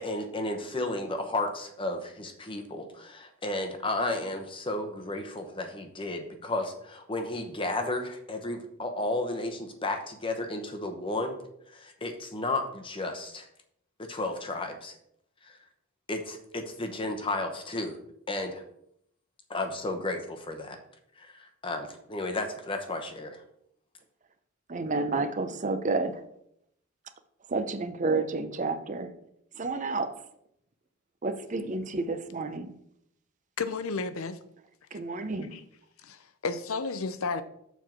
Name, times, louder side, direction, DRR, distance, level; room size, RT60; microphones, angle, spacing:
voice 1, 0.0-11.4 11.7-13.5 14.0-14.9 15.4-15.6 16.1-18.0 18.3-18.6 19.5-20.8 21.2-23.4, left 2 dB, 25° left, 5 dB, 0.9 m, -33 dB
voice 2, 24.7-26.2 27.5-29.1 29.5-30.2 31.2-32.7 34.9-35.5, right 3 dB, 35° right, 10 dB, 0.6 m, -30 dB
voice 3, 33.6-34.4 35.5-35.6 36.0-37.4, left 4 dB, 75° left, 12 dB, 0.7 m, -32 dB
7.0 x 4.6 x 5.9 m, 0.74 s
head